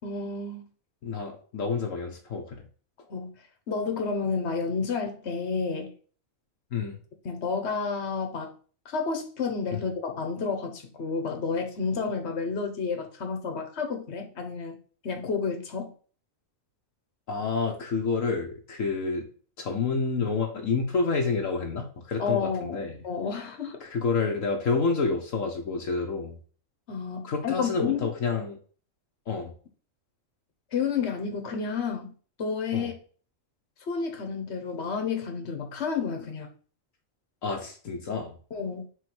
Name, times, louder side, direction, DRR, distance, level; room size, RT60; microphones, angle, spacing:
voice 1, 0.0-0.6 3.1-3.3 3.7-5.9 7.2-8.5 8.8-14.8 15.0-15.9 22.2-23.8 26.9-28.1 30.7-32.1 32.4-32.9 33.9-36.5 38.5-38.9, left 5 dB, 55° left, 4 dB, 1.6 m, -30 dB
voice 2, 1.0-2.6 6.7-7.0 9.7-9.8 17.3-19.3 19.6-23.0 23.8-26.4 27.2-28.6 29.3-29.5 32.7-32.9 37.4-38.4, left 4 dB, 70° left, 1 dB, 1.5 m, -29 dB
4.9 x 4.5 x 6.1 m, 0.41 s
omnidirectional pair, 1.4 m